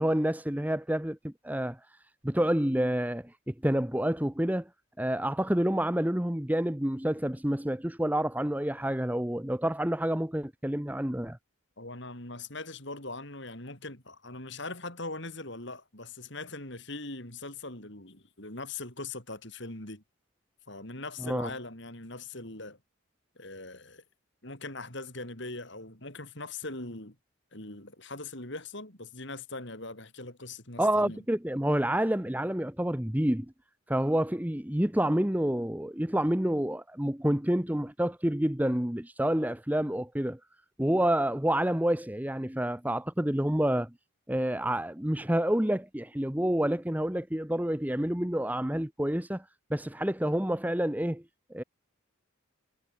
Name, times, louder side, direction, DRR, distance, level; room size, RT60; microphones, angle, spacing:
voice 1, 0.0-1.8 2.2-4.7 5.0-11.4 21.2-21.5 30.8-33.5 33.9-40.4 40.8-43.9 44.3-49.4 49.7-51.2 51.5-51.6, right 1 dB, 5° right, 0.9 m, -28 dB
voice 2, 11.8-20.0 20.7-22.8 23.4-24.0 24.4-27.1 27.5-31.2, left 2 dB, 55° left, 5.0 m, -41 dB
head